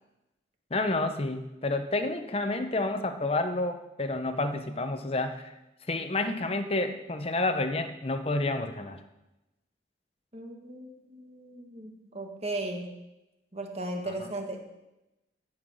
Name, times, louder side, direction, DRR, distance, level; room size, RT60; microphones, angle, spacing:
voice 1, 0.7-5.5 5.9-9.0 14.2-14.3, left 2 dB, 35° left, 8 dB, 0.9 m, -29 dB
voice 2, 10.3-12.9 13.5-14.6, right 2 dB, 35° right, 3 dB, 1.6 m, -36 dB
15.0 x 5.8 x 6.4 m, 0.97 s
head